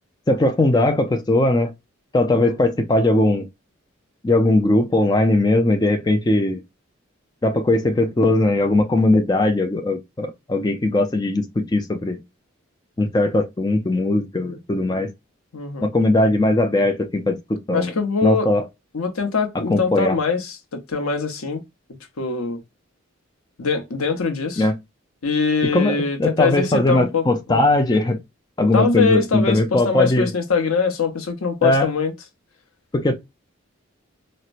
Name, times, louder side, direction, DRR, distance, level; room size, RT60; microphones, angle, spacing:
voice 1, 0.3-1.7 2.1-3.5 4.2-6.6 7.4-12.2 13.0-15.1 15.8-17.9 18.2-18.6 19.7-20.2 24.6-24.7 25.7-28.2 28.6-30.3 31.6-31.9 32.9-33.1, left 2 dB, 20° left, 0.4 m, -19 dB
voice 2, 15.5-15.9 17.7-18.5 18.9-21.6 22.2-22.6 23.6-24.7 25.2-27.2 27.5-27.6 28.7-32.1, left 5 dB, 90° left, 0.8 m, -23 dB
4.2 x 2.0 x 2.4 m
head